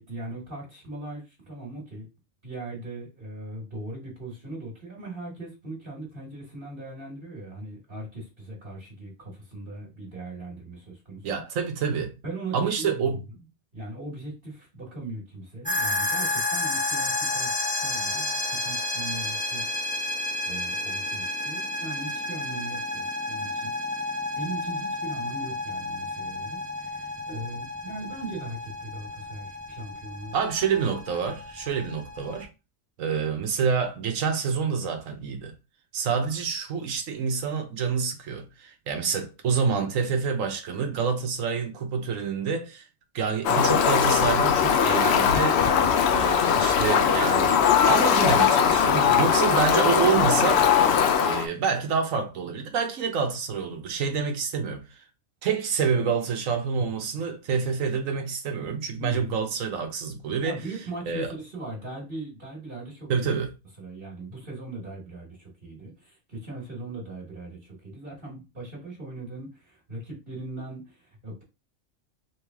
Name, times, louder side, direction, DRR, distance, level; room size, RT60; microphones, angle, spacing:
voice 1, 0.0-2.1 2.4-11.4 12.2-13.2 13.7-17.5 17.8-19.7 20.4-30.3 48.9-49.3 59.0-59.3 60.4-63.3 63.8-71.4, right 2 dB, 45° right, 1.6 m, -39 dB
voice 2, 11.2-12.1 12.5-13.2 30.3-32.5 33.0-35.5 35.9-42.9 43.1-45.6 46.1-50.6 51.2-55.0 55.4-60.6 61.1-61.3 63.1-63.5, right 6 dB, 90° right, 1.2 m, -27 dB
sound 1, 15.7-32.4, left 2 dB, 10° left, 0.6 m, -31 dB
Fowl, 43.4-51.5, left 7 dB, 65° left, 0.8 m, -20 dB
3.3 x 3.1 x 3.4 m
omnidirectional pair, 1.3 m